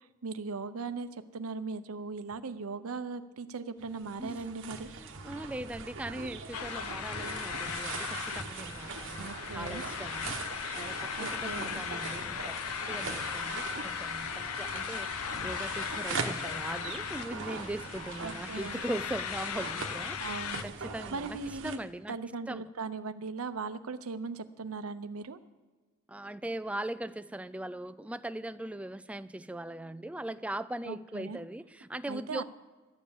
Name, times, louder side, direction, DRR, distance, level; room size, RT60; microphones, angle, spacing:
voice 1, 0.0-4.9 9.2-9.9 11.2-11.8 18.2-18.8 20.2-20.7 21.1-21.8 22.1-25.4 30.8-31.4 32.1-32.4, right 4 dB, 80° right, 11 dB, 0.7 m, -39 dB
sound 1, 3.8-21.8, right 4 dB, 60° right, 1.2 m, -41 dB
voice 2, 5.0-12.6 12.9-22.2 22.5-22.6 26.1-32.4, right 1 dB, 5° right, 13 dB, 0.3 m, -40 dB
sound 2, 6.5-20.6, left 8 dB, 85° left, 0.5 m, -38 dB
13.0 x 9.6 x 7.2 m, 1.4 s
head